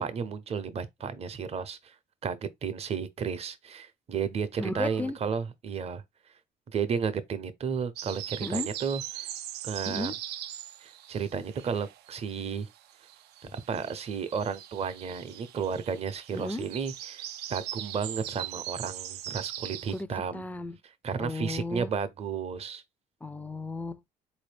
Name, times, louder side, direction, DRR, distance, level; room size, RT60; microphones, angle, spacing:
voice 1, 0.0-1.9 2.2-6.0 6.7-9.3 9.6-10.1 10.8-12.7 13.5-17.2 17.5-20.4 21.0-22.8, right 6 dB, 35° right, 0.6 m, -33 dB
voice 2, 4.6-5.2 8.4-8.7 9.9-10.1 16.3-16.6 19.9-20.8 21.2-21.9 23.2-24.0, left 2 dB, 10° left, 0.3 m, -34 dB
sound 1, 8.0-12.3 12.6-20.0, right 12 dB, 75° right, 0.4 m, -40 dB
4.0 x 2.6 x 3.3 m
cardioid pair, 110°, 17 cm